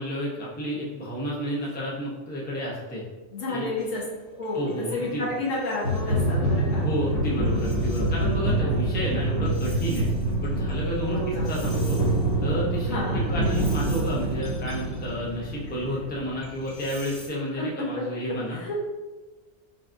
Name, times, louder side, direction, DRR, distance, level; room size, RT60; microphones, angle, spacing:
voice 1, 0.0-3.0 3.5-3.7 4.5-5.3 6.8-10.1 10.4-12.0 12.4-18.6, equal, 10° left, -5 dB, 0.5 m, -31 dB
voice 2, 3.3-4.0 4.4-6.9 7.5-7.6 8.5-8.8 11.1-11.5 12.9-13.2 17.6-17.9 18.5-18.8, left 2 dB, 75° left, -6 dB, 1.5 m, -31 dB
sound 1, 4.7-4.8 5.7-17.3, right 1 dB, 50° left, 1.1 m, -26 dB
5.4 x 2.4 x 2.6 m, 1.3 s
omnidirectional pair, 1.4 m